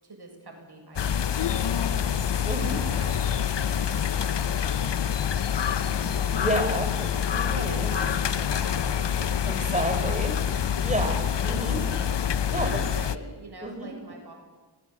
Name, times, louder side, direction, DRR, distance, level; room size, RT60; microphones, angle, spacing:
voice 1, 0.0-2.2 2.6-6.0 7.5-10.5 10.8-11.1 12.5-14.3, right 2 dB, 50° right, 2 dB, 7.7 m, -44 dB
sound 1, 1.0-13.2, left 8 dB, 60° left, 1.1 m, -26 dB
voice 2, 2.5-2.8 6.3-7.9 9.5-10.3 10.8-11.2 11.4-11.9 12.4-12.7 13.6-13.9, right 1 dB, 15° right, 4 dB, 7.3 m, -30 dB
sound 2, 5.7-11.5, right 1 dB, 15° left, 7.4 m, -46 dB
26.5 x 21.5 x 8.7 m, 1.3 s
cardioid pair, 45°, 48 cm